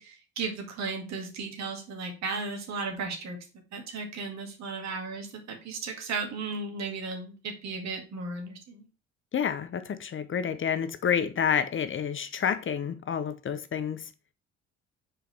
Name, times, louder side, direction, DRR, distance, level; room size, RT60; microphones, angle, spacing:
voice 1, 0.0-3.4 3.7-8.9, right 4 dB, 60° right, 2.0 m, -35 dB
voice 2, 9.3-14.1, left 8 dB, 40° left, 0.8 m, -29 dB
5.0 x 4.7 x 4.6 m
hypercardioid pair, 55°, 32 cm